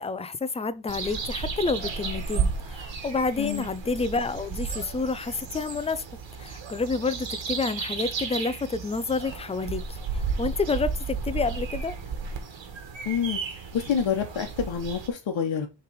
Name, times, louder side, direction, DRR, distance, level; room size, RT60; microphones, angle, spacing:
voice 1, 0.0-6.0 6.4-11.9, left 4 dB, 15° left, 0.3 m, -29 dB
sound 1, 0.9-15.1, right 5 dB, 80° right, 1.5 m, -33 dB
voice 2, 3.4-3.7 13.0-15.7, left 7 dB, 90° left, 1.2 m, -28 dB
6.8 x 3.3 x 4.6 m
wide cardioid pair, 170°, 44 cm